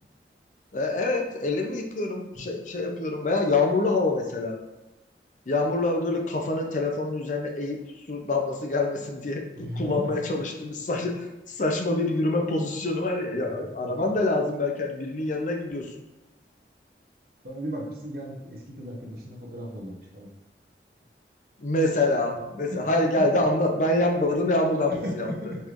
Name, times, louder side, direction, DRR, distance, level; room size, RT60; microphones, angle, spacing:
voice 1, 0.7-4.6 5.5-7.8 8.1-15.9 21.6-25.5, left 2 dB, 45° left, 2 dB, 0.5 m, -26 dB
voice 2, 9.6-10.4 13.4-13.9 17.4-20.3 23.3-23.4 25.0-25.6, equal, 55° right, -2 dB, 0.9 m, -36 dB
5.3 x 3.1 x 2.5 m, 1.0 s
head